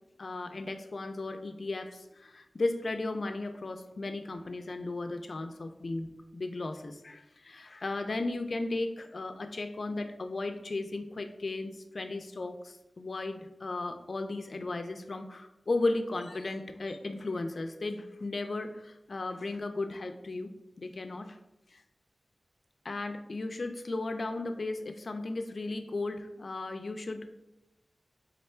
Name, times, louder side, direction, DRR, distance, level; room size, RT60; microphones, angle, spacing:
voice 1, 0.2-20.5 20.8-21.4 21.7-21.8 22.8-27.4, left 2 dB, 55° left, 7 dB, 0.4 m, -35 dB
3.7 x 3.4 x 4.2 m, 0.92 s
wide cardioid pair, 95°, 0 cm